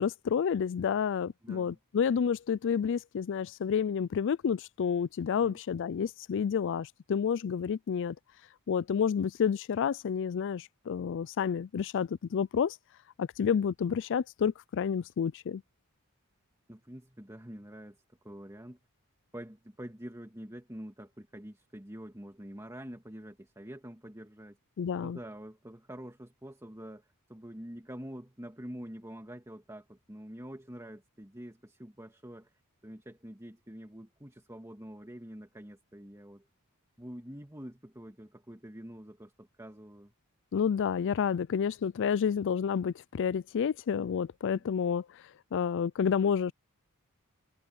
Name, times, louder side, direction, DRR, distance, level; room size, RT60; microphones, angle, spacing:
voice 1, 0.0-8.2 8.7-12.8 13.2-15.6 24.8-25.2 40.5-45.1 45.5-46.5, left 7 dB, 55° left, 0.4 m, -29 dB
voice 2, 1.4-1.8 5.3-5.6 16.7-18.8 19.3-24.6 25.0-32.5 32.8-36.5 37.0-40.1, equal, 15° right, 2.4 m, -46 dB
head